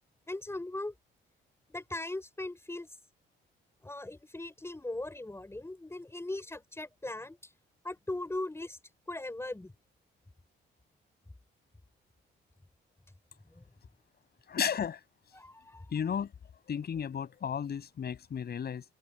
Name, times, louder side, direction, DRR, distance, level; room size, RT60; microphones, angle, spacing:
voice 1, 0.3-0.9 1.7-2.9 3.8-7.4 7.8-8.8 9.1-9.7 13.5-13.6 15.3-16.2, left 2 dB, 15° left, 5.8 m, -39 dB
voice 2, 14.5-15.0 15.9-16.3 16.6-18.8, left 7 dB, 55° left, 7.6 m, -33 dB
open air
cardioid pair, 90°, 20 cm